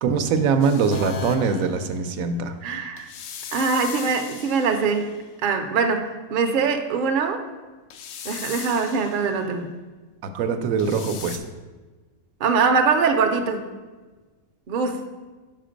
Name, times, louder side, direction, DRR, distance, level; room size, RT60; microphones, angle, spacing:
voice 1, 0.0-2.6 10.2-11.4, right 5 dB, 80° right, 8 dB, 1.0 m, -23 dB
sound 1, 0.6-1.5 3.0-5.2 7.9-9.4 10.8-11.4, left 8 dB, 80° left, 1.0 m, -39 dB
sound 2, 0.9-2.8, left 4 dB, 60° left, 0.8 m, -37 dB
voice 2, 2.6-3.1 3.5-7.4 8.2-9.7 12.4-13.7 14.7-15.0, right 5 dB, 55° right, 5 dB, 0.6 m, -23 dB
5.8 x 5.0 x 5.0 m, 1.3 s
omnidirectional pair, 1.4 m